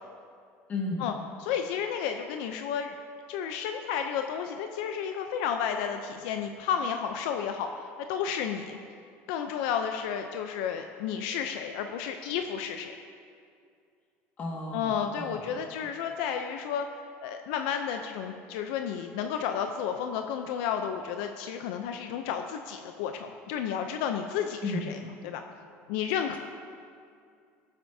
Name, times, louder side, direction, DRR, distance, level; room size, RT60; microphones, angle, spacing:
voice 1, 0.7-1.1 14.4-15.6 24.6-24.9, left 2 dB, 30° left, -1 dB, 1.7 m, -34 dB
voice 2, 1.4-2.9 3.3-7.7 8.1-8.8 9.3-12.9 14.7-16.9 17.2-25.0 25.2-25.4 25.9-26.4, left 8 dB, 80° left, 5 dB, 0.5 m, -32 dB
17.0 x 7.9 x 2.7 m, 2.3 s
cardioid pair, 140°, 6 cm